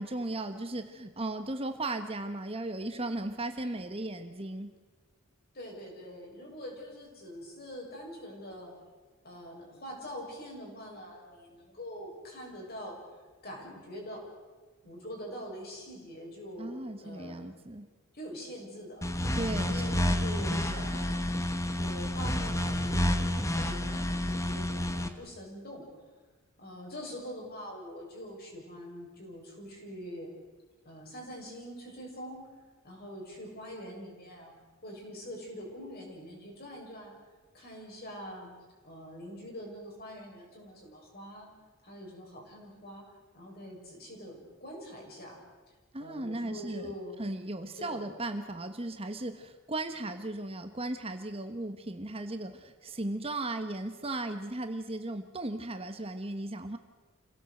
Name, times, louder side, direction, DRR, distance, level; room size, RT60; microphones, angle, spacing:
voice 1, 0.0-4.7 16.6-17.9 19.3-19.9 20.5-21.0 45.9-46.9 47.2-56.8, right 2 dB, 25° right, 7 dB, 1.2 m, -36 dB
voice 2, 5.5-8.7 9.2-13.0 13.4-14.3 14.8-17.4 18.1-19.0 19.7-21.4 21.8-25.8 26.6-30.3 30.8-32.5 32.8-34.5 34.8-37.1 37.5-38.5 38.8-41.5 41.8-43.1 43.3-45.4 46.0-47.2 47.7-48.0, equal, 45° left, -1 dB, 6.8 m, -44 dB
sound 1, 19.0-25.1, left 1 dB, 15° left, 1.3 m, -30 dB
27.5 x 17.5 x 7.9 m, 1.3 s
head